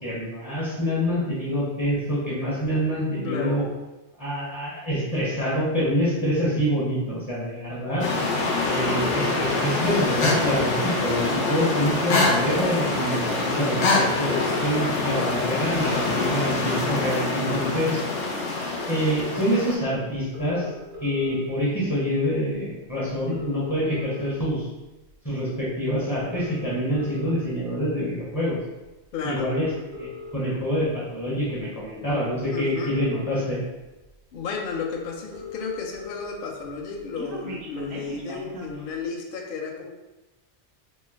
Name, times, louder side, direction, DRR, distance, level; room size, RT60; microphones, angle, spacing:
voice 1, 0.0-3.6 4.2-8.1 8.7-18.0 18.9-20.7 21.0-24.7 25.2-28.6 29.2-30.1 30.3-33.6, equal, 20° left, -7 dB, 0.6 m, -26 dB
voice 2, 3.2-3.6 29.1-29.5 32.5-33.0 34.3-39.9, left 5 dB, 60° left, 1 dB, 0.6 m, -33 dB
sound 1, 8.0-19.7, left 3 dB, 80° left, 1.0 m, -25 dB
sound 2, 20.3-21.3 22.5-22.6 22.9-23.0 23.2-24.6 25.1-25.3 26.2-27.3 28.0-28.3 29.2-30.3 31.6-31.7 32.1-33.3 34.0-34.1 34.4-34.5 34.7-34.8 35.0-36.3 36.6-38.8, left 3 dB, 90° right, 1.1 m, -38 dB
3.1 x 2.0 x 3.4 m, 1.0 s
omnidirectional pair, 1.2 m